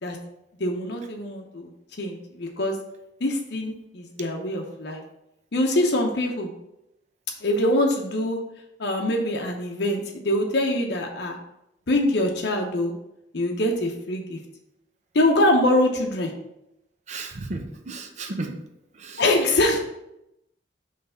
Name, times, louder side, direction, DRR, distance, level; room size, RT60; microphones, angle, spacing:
voice 1, 0.6-1.7 2.0-2.8 3.2-5.0 5.5-6.5 7.4-8.4 8.8-11.4 11.9-12.9 13.3-14.4 15.1-16.3 19.2-19.8, left 1 dB, 65° left, 2 dB, 0.8 m, -24 dB
voice 2, 17.1-18.6 18.9-19.3, right 2 dB, 40° right, 4 dB, 0.7 m, -34 dB
5.6 x 3.3 x 5.5 m, 0.85 s
head